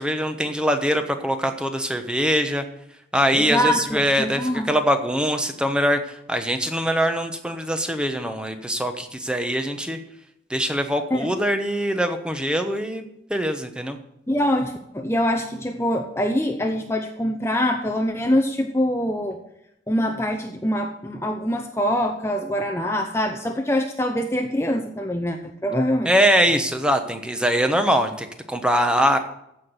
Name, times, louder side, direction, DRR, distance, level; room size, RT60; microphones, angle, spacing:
voice 1, 0.0-2.6 3.1-6.0 6.3-10.0 10.5-14.0 26.0-29.2, equal, 5° right, 7 dB, 1.1 m, -22 dB
voice 2, 3.3-4.7 11.1-11.3 14.3-19.4 19.9-26.1, equal, 15° left, 5 dB, 0.8 m, -24 dB
15.0 x 5.9 x 8.0 m, 0.81 s
head